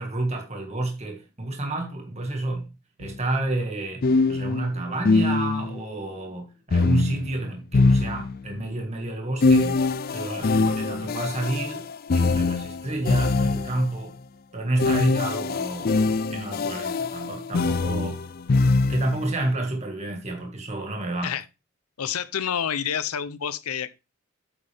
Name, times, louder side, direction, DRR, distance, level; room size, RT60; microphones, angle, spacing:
voice 1, 0.0-2.7 3.0-9.8 10.1-14.1 14.5-18.2 18.8-21.3, right 2 dB, 30° right, 1.9 m, -30 dB
sound 1, 3.0-3.2 4.0-5.8 6.7-8.6 9.4-13.9 14.8-19.3, left 3 dB, 40° left, 0.4 m, -23 dB
voice 2, 22.0-23.9, left 8 dB, 85° left, 0.7 m, -28 dB
9.1 x 8.2 x 3.5 m
head